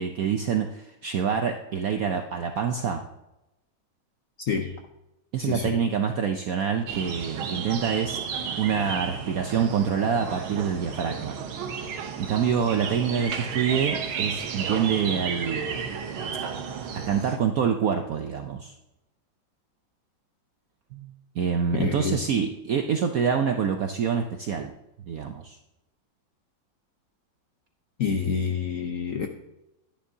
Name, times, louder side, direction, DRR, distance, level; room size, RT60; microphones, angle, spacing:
voice 1, 0.0-3.0 5.3-8.2 8.6-11.4 11.8-11.9 12.2-15.8 16.9-18.7 20.9-24.7 25.1-25.6, right 7 dB, 70° right, 5 dB, 0.8 m, -26 dB
voice 2, 4.4-4.8 5.4-5.7 21.8-22.2 28.0-29.3, left 6 dB, 65° left, 4 dB, 0.8 m, -28 dB
sound 1, 6.9-17.4, right 6 dB, 90° right, 1.8 m, -33 dB
11.5 x 10.5 x 2.7 m, 0.92 s
omnidirectional pair, 2.2 m